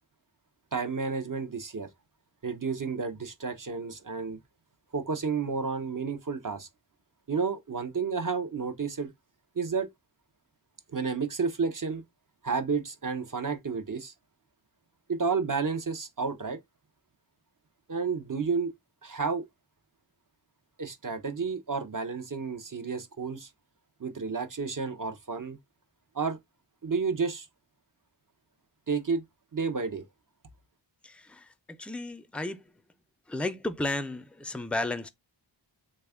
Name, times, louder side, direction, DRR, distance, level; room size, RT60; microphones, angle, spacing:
voice 1, 0.7-1.9 2.4-4.4 4.9-6.7 7.3-9.1 9.6-9.9 10.9-12.0 12.4-14.1 15.1-16.6 17.9-18.7 19.0-19.4 20.8-23.5 24.0-25.6 26.1-26.4 26.8-27.5 28.9-29.2 29.5-30.1, right 5 dB, 45° right, 0.6 m, -31 dB
voice 2, 31.0-32.6 33.3-35.1, left 2 dB, 5° left, 0.3 m, -33 dB
3.4 x 2.3 x 3.4 m
wide cardioid pair, 40°, 45 cm